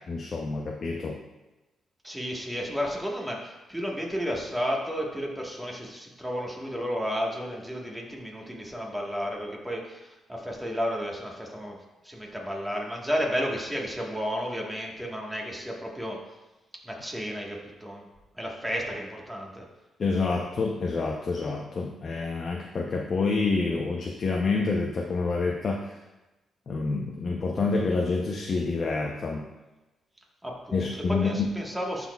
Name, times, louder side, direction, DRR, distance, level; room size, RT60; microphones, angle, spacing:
voice 1, 0.1-1.2 20.0-25.9 26.7-29.4 30.7-31.5, left 3 dB, 45° left, 0 dB, 0.6 m, -28 dB
voice 2, 2.0-11.8 12.0-16.2 16.8-18.0 18.3-19.6 30.4-32.1, equal, 5° right, -1 dB, 1.4 m, -32 dB
11.0 x 4.2 x 2.3 m, 1.1 s
cardioid pair, 95°, 0 cm